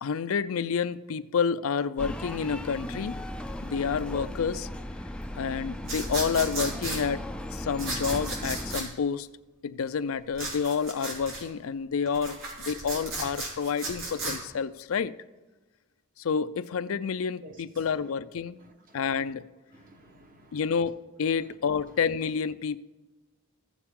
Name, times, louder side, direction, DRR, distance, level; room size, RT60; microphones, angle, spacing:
voice 1, 0.0-3.1 3.6-4.7 5.3-7.2 7.5-9.3 9.6-15.1 16.2-18.6 18.9-19.5 20.5-22.8, left 6 dB, 80° left, 0.4 m, -29 dB
sound 1, 2.0-8.8, left 1 dB, 5° left, 0.3 m, -37 dB
sound 2, 5.8-7.0 7.8-8.9 10.3-11.4 12.1-14.4, right 2 dB, 75° right, 3.5 m, -34 dB
voice 2, 17.4-17.8 18.6-19.3 19.7-20.6, right 1 dB, 40° right, 1.2 m, -52 dB
15.0 x 7.2 x 3.7 m
head